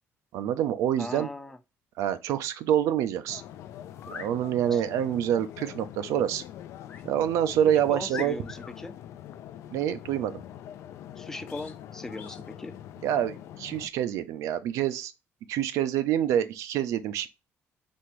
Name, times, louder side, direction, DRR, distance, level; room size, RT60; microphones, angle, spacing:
voice 1, 0.3-1.3 2.0-3.4 4.1-6.4 7.0-8.4 9.7-10.4 13.0-15.1 15.5-17.3, right 10 dB, 80° right, 0.6 m, -26 dB
voice 2, 1.0-1.6 4.7-4.8 7.9-8.9 11.2-12.7, left 2 dB, 10° left, 0.4 m, -38 dB
sound 1, 3.3-13.9, left 11 dB, 65° left, 0.4 m, -44 dB
sound 2, 3.9-4.3 6.9-7.1 7.6-7.7 8.1-8.7 11.5-11.8 12.2-12.4, left 5 dB, 35° left, 1.0 m, -42 dB
4.3 x 3.4 x 3.1 m
cardioid pair, 175°, 5 cm